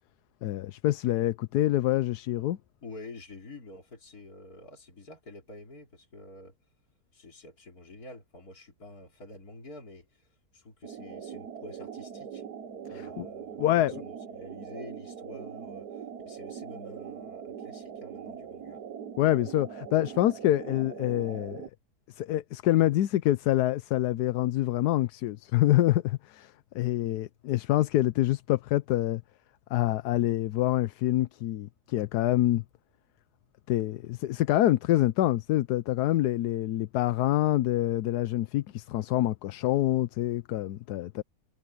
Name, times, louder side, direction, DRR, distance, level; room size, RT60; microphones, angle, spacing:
voice 1, 0.4-2.6 12.9-13.3 13.6-13.9 19.2-21.6 22.2-29.2 29.7-32.6 33.7-41.2, left 14 dB, 85° left, 1.2 m, -26 dB
voice 2, 2.8-6.7 7.1-12.4 12.8-18.8, left 2 dB, 70° left, 4.1 m, -48 dB
sound 1, 10.8-21.7, right 7 dB, 85° right, 1.7 m, -41 dB
omnidirectional pair, 1.6 m